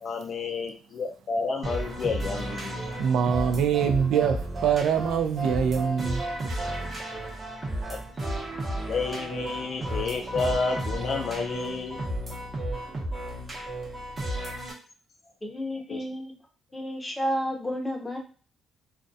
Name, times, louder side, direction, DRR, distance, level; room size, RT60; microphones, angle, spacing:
voice 1, 0.0-2.8 7.9-8.0 8.9-12.0 15.9-16.0, left 4 dB, 60° left, 0.4 m, -30 dB
sound 1, 1.6-14.7, right 1 dB, 35° right, 0.8 m, -33 dB
voice 2, 3.0-6.5, right 7 dB, 80° right, 0.3 m, -24 dB
voice 3, 15.4-16.3 16.7-18.2, equal, 15° left, 0.6 m, -31 dB
2.3 x 2.1 x 2.6 m
cardioid pair, 90°, 0 cm